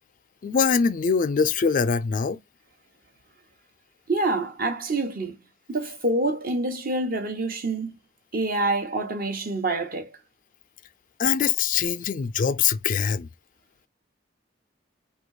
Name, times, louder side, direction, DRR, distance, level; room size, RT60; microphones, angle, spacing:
voice 1, 0.4-2.4 11.2-13.3, left 6 dB, 45° left, 0.3 m, -23 dB
voice 2, 4.1-5.4 5.7-7.9 8.3-10.1, right 2 dB, 55° right, 1.1 m, -26 dB
3.9 x 2.8 x 4.7 m
head